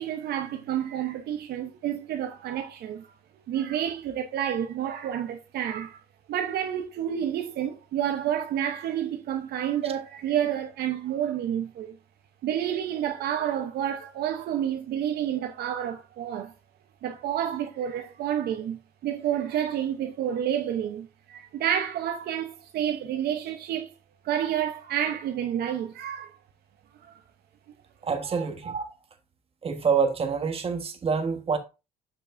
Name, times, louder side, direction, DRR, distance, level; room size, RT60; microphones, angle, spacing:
voice 1, 0.0-3.1 3.5-6.0 6.3-12.0 12.4-16.5 17.0-23.9 24.2-26.4 27.0-27.1 28.2-28.5, right 10 dB, 70° right, 0.9 m, -29 dB
voice 2, 28.0-28.9 29.6-31.6, right 5 dB, 35° right, 1.4 m, -26 dB
7.1 x 5.8 x 2.6 m
cardioid pair, 105°, 17 cm